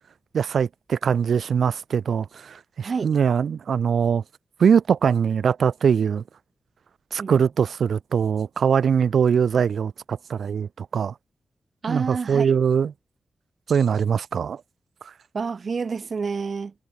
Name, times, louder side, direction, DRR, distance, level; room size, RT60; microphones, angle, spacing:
voice 1, 0.3-4.2 4.6-6.2 7.1-11.1 11.9-12.9 13.7-14.6, right 7 dB, 80° right, 0.3 m, -22 dB
voice 2, 2.8-3.2 7.2-7.5 11.8-12.6 15.3-16.7, right 5 dB, 55° right, 2.2 m, -29 dB
wide cardioid pair, 105°, 0 cm